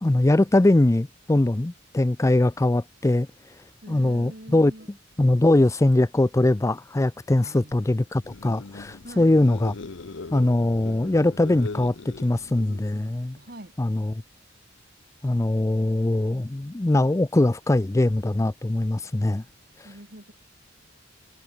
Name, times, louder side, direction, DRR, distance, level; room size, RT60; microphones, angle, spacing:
voice 1, 0.0-3.3 3.9-4.7 5.2-9.7 10.3-13.4 13.8-14.0 15.2-19.4, left 1 dB, 15° left, 0.4 m, -21 dB
voice 2, 3.8-4.9 7.4-7.8 9.0-9.6 13.4-13.7 19.8-20.3, right 1 dB, 50° right, 3.7 m, -44 dB
sound 1, 8.2-13.3, left 3 dB, 65° left, 0.8 m, -40 dB
head